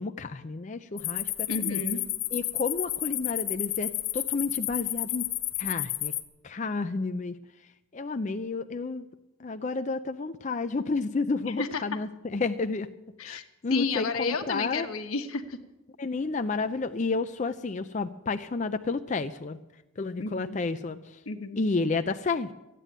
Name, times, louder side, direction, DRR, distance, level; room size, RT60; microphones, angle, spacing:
voice 1, 0.0-1.8 2.3-5.3 5.6-6.1 6.4-7.4 7.9-9.1 9.4-12.9 13.2-14.9 16.0-19.6 20.0-21.2 21.6-22.5, left 3 dB, 35° left, 9 dB, 0.4 m, -31 dB
sound 1, 1.0-6.2, left 15 dB, 70° left, 0.8 m, -31 dB
voice 2, 1.5-2.0 11.4-11.8 13.2-13.4 13.7-15.6 20.2-20.6 21.2-21.6, left 3 dB, 90° left, 6 dB, 1.3 m, -31 dB
14.5 x 9.2 x 9.0 m, 1.0 s
head